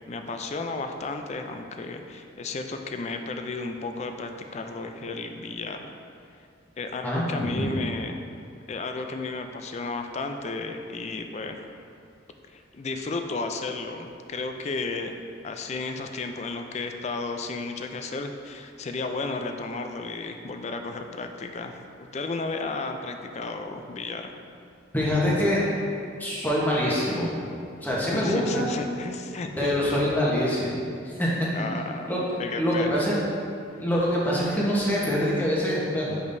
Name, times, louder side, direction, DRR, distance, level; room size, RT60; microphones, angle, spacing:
voice 1, 0.1-5.9 6.8-8.2 8.7-11.6 12.5-15.2 15.4-24.3 28.1-30.2 31.5-32.1 32.4-33.1, left 3 dB, 35° left, 5 dB, 0.3 m, -33 dB
voice 2, 7.0-7.7 24.9-25.6 26.2-27.3 27.8-28.7 29.6-30.7 31.0-31.3 32.1-32.2 32.6-33.1 33.8-36.1, equal, 10° left, -6 dB, 1.0 m, -25 dB
7.1 x 5.0 x 2.6 m, 2.5 s
head